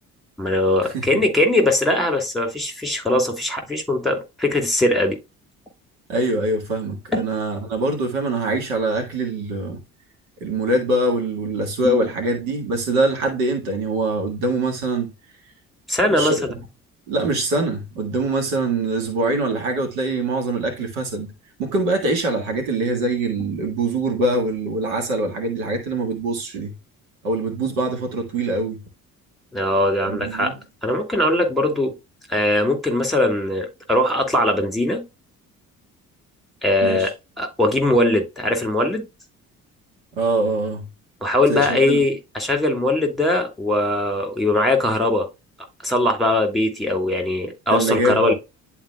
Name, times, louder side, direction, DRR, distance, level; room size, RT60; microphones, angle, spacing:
voice 1, 0.4-5.2 7.1-7.2 15.9-16.3 29.5-30.6 30.8-31.9 32.3-35.0 36.6-37.1 37.4-39.0 41.2-45.3 45.8-48.3, left 1 dB, ahead, 2.7 m, -20 dB
voice 2, 6.1-9.8 10.4-15.1 16.1-16.5 17.1-21.3 21.6-26.7 27.2-28.8 30.0-30.5 36.8-37.1 40.2-40.9 41.5-42.0 47.7-48.3, right 2 dB, 65° right, 1.8 m, -23 dB
11.0 x 4.2 x 2.2 m
figure-of-eight pair, 50°, 43 cm